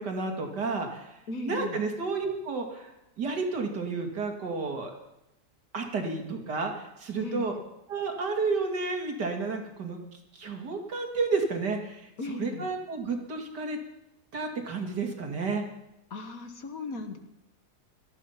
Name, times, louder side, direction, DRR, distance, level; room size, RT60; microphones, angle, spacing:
voice 1, 0.0-2.9 3.2-4.9 5.7-7.5 7.9-13.8 14.3-15.6, right 4 dB, 85° right, 3 dB, 2.9 m, -31 dB
voice 2, 1.3-1.8 7.2-7.5 12.2-12.7 16.1-17.2, left 3 dB, 60° left, 7 dB, 1.8 m, -37 dB
18.0 x 14.0 x 5.8 m, 0.88 s
omnidirectional pair, 1.8 m